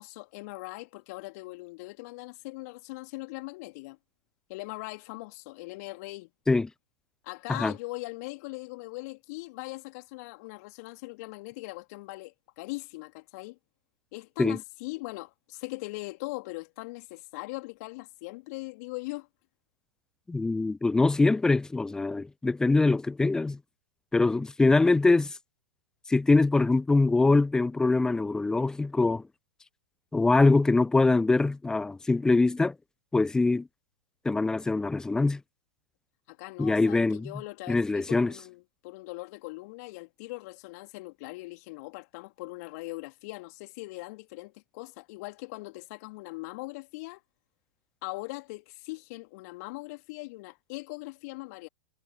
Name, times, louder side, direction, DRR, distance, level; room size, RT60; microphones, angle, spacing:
voice 1, 0.0-4.0 4.5-6.3 7.2-13.6 14.1-19.3 36.3-47.2 48.0-51.7, left 24 dB, 50° left, 2.8 m, -40 dB
voice 2, 20.3-23.6 24.1-25.3 26.1-29.2 30.1-32.7 33.1-33.7 34.2-35.4 36.6-37.3 37.7-38.3, left 3 dB, 5° left, 0.3 m, -23 dB
figure-of-eight pair, 100°, 11 cm